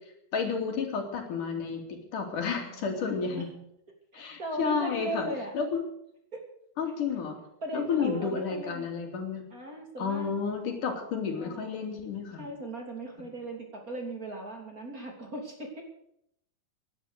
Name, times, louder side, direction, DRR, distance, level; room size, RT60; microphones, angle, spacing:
voice 1, 0.3-3.5 4.1-5.3 5.5-5.8 6.8-7.4 7.7-9.4 10.0-12.4, left 5 dB, 90° left, 4 dB, 4.4 m, -31 dB
voice 2, 2.7-3.5 4.1-5.5 6.3-6.4 7.6-8.9 9.5-10.3 11.4-11.8 12.4-15.8, right 1 dB, 30° right, 2 dB, 3.2 m, -38 dB
18.0 x 11.0 x 6.7 m, 0.74 s
omnidirectional pair, 3.5 m